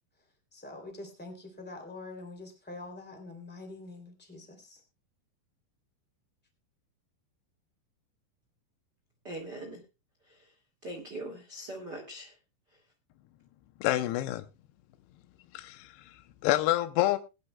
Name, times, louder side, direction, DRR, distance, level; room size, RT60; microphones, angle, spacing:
voice 1, 0.5-4.8, left 2 dB, 5° left, 1.3 m, -45 dB
voice 2, 9.2-9.8 10.8-12.3, right 1 dB, 50° right, 1.2 m, -41 dB
voice 3, 13.8-14.4 15.5-16.1 16.4-17.2, left 15 dB, 85° left, 2.3 m, -27 dB
20.5 x 11.0 x 2.2 m
omnidirectional pair, 5.5 m